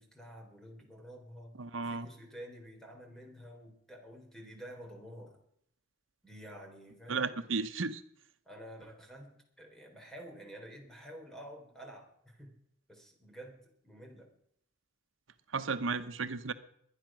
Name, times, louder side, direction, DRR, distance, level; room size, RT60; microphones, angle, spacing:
voice 1, 0.0-5.4 6.2-7.3 8.5-12.6 12.9-14.3, equal, 5° left, 2 dB, 3.7 m, -50 dB
voice 2, 1.6-2.1 7.1-8.0 15.5-16.5, right 4 dB, 90° right, 10 dB, 0.9 m, -34 dB
21.0 x 10.5 x 6.1 m, 0.72 s
head